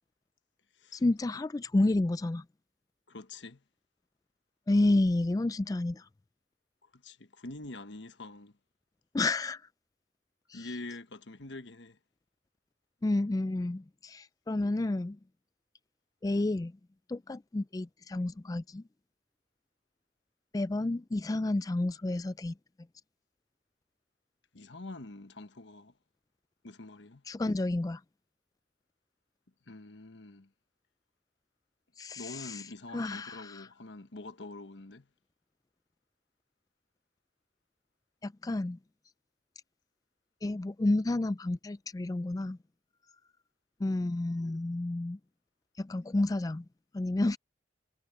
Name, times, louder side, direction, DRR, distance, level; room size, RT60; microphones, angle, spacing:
voice 1, 0.9-2.4 4.7-6.1 9.1-9.6 10.5-10.7 13.0-15.2 16.2-16.7 17.1-18.8 20.5-22.5 27.3-28.0 32.0-32.6 32.9-33.7 38.2-38.8 40.4-42.6 43.8-45.2 45.8-46.6 46.9-47.4, left 2 dB, 20° left, 0.3 m, -30 dB
voice 2, 3.1-3.6 6.8-8.5 10.5-12.0 24.5-25.9 26.6-27.2 29.7-30.5 32.2-35.1, left 2 dB, 85° left, 1.2 m, -45 dB
head